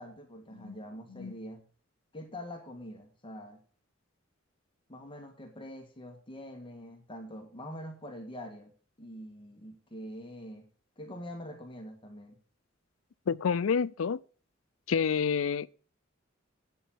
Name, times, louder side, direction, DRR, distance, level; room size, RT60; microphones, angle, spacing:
voice 1, 0.0-1.6 2.1-3.6 4.9-8.7 9.0-10.7 11.0-12.3, equal, 25° left, 1.6 m, -44 dB
voice 2, 13.3-14.2 14.9-15.7, left 6 dB, 85° left, 0.4 m, -28 dB
8.5 x 7.0 x 7.4 m
head